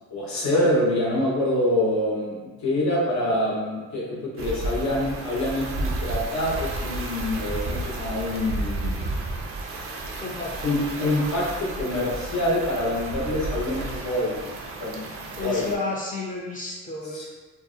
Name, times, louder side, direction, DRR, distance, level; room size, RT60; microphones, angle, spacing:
voice 1, 0.1-9.0 10.6-14.5 14.8-15.0 15.4-15.8 17.1-17.2, left 1 dB, 70° left, -5 dB, 0.9 m, -26 dB
sound 1, 4.4-15.8, right 2 dB, 50° right, 0.4 m, -32 dB
voice 2, 10.2-10.7 15.4-17.2, left 3 dB, 25° left, -4 dB, 0.5 m, -31 dB
2.5 x 2.0 x 2.5 m, 1.3 s
cardioid pair, 90°, 30 cm